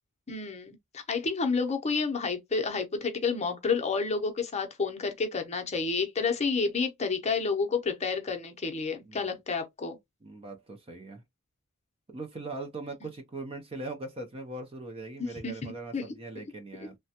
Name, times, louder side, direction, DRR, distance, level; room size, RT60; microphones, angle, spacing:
voice 1, 0.3-10.0 15.4-16.1 16.8-16.9, left 4 dB, 30° left, 0.6 m, -30 dB
voice 2, 10.2-11.2 12.1-17.0, right 2 dB, 25° right, 0.5 m, -40 dB
3.3 x 2.1 x 2.7 m
head